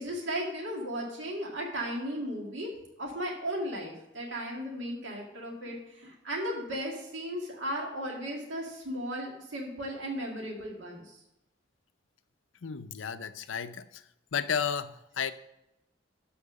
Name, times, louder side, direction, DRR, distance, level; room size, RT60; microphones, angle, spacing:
voice 1, 0.0-2.7 3.0-11.2, equal, 75° right, -1 dB, 2.1 m, -36 dB
voice 2, 12.6-14.0 14.3-15.3, left 7 dB, 90° left, 12 dB, 0.6 m, -33 dB
12.5 x 4.4 x 6.3 m, 0.88 s
head